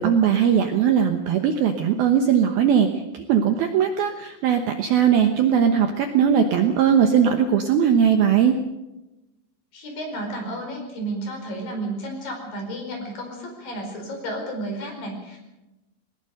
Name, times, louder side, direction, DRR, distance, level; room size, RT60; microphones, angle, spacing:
voice 1, 0.0-2.9 3.1-8.5, right 8 dB, 70° right, 5 dB, 2.4 m, -19 dB
voice 2, 9.7-15.4, right 1 dB, 50° left, 2 dB, 6.4 m, -32 dB
21.0 x 20.0 x 6.6 m, 1.0 s
omnidirectional pair, 5.5 m